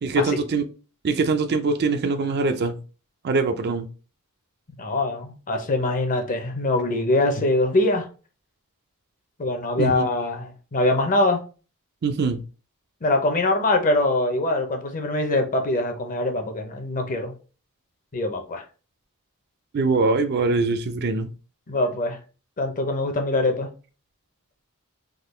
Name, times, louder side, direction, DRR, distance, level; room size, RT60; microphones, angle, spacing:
voice 1, 0.0-0.6 1.0-2.8 3.2-3.9 9.8-10.0 12.0-12.4 19.7-21.3, right 3 dB, 45° right, 0.4 m, -23 dB
voice 2, 4.8-8.1 9.4-11.4 13.0-17.3 18.1-18.6 21.7-22.2 22.6-23.7, left 2 dB, 40° left, 0.6 m, -23 dB
3.7 x 2.2 x 3.1 m
head